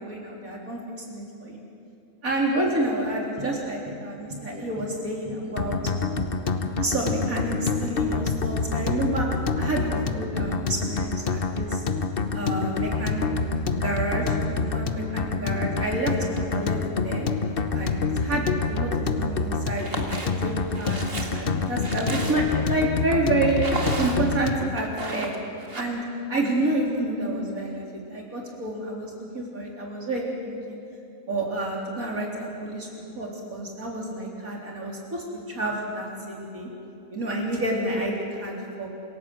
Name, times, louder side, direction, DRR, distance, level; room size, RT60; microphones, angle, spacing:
voice 1, 0.0-1.6 2.2-5.8 6.8-9.3 9.6-11.8 12.3-13.4 13.8-17.3 17.7-21.0 21.3-23.6 24.0-25.3 25.7-26.0 26.3-30.8 31.3-32.9 33.1-36.7 37.1-38.9, right 1 dB, 65° right, -2 dB, 4.4 m, -29 dB
sound 1, 3.4-4.0 4.3-4.9 5.2-5.8 6.1-6.7 7.1-7.7 8.0-8.6 8.9-9.5 9.9-10.5, left 1 dB, 20° right, 6.0 m, -39 dB
sound 2, 5.6-24.8, left 4 dB, 45° left, 1.1 m, -27 dB
sound 3, 19.7-20.3 20.7-22.6 23.5-24.4 24.8-25.8, right 2 dB, 40° right, 2.2 m, -33 dB
27.5 x 17.0 x 7.9 m, 2.7 s
omnidirectional pair, 1.6 m